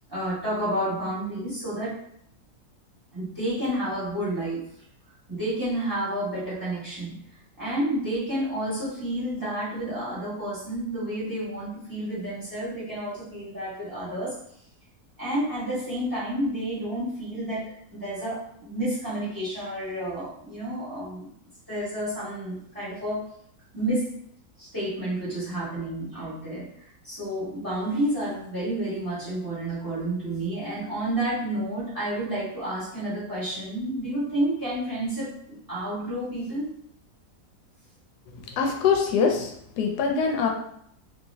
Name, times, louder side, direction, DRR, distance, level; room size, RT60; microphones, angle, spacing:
voice 1, 0.1-1.9 3.1-4.6 5.3-7.1 7.6-14.4 15.2-21.3 21.7-23.3 23.7-24.1 24.6-26.7 27.0-36.7, right 1 dB, 15° right, -9 dB, 1.3 m, -30 dB
voice 2, 38.5-40.5, left 5 dB, 85° left, 3 dB, 1.1 m, -24 dB
2.8 x 2.8 x 2.7 m, 0.69 s
omnidirectional pair, 1.7 m